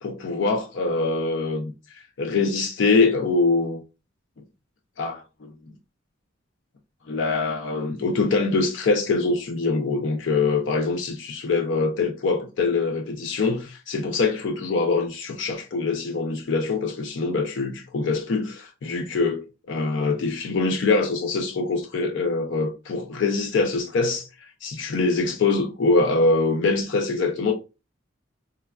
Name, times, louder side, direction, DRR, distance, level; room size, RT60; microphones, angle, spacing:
voice 1, 0.0-3.8 5.0-5.5 7.1-27.5, left 3 dB, 60° left, 0.4 m, -24 dB
3.3 x 2.2 x 2.2 m
head